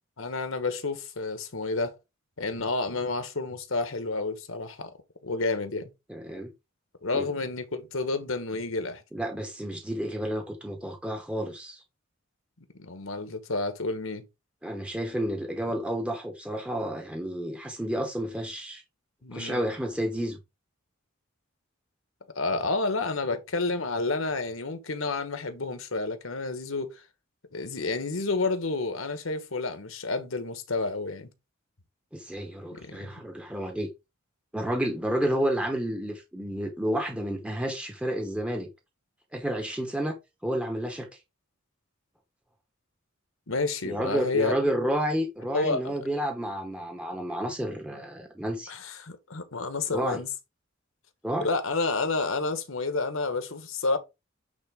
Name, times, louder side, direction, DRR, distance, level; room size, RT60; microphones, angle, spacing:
voice 1, 0.2-1.9 2.4-4.9 5.2-5.9 7.0-9.0 12.8-14.2 19.2-19.6 22.3-27.0 27.5-31.3 32.8-33.2 43.5-44.5 45.5-45.9 48.7-50.3 51.4-54.0, left 3 dB, 75° left, 1.3 m, -30 dB
voice 2, 6.1-6.5 7.1-7.3 9.1-11.8 14.6-18.8 19.3-20.4 32.1-33.9 34.5-38.7 39.3-40.2 40.4-41.1 43.8-48.7 49.9-50.2 51.2-51.5, equal, 5° right, 1.0 m, -30 dB
8.8 x 3.8 x 3.6 m
head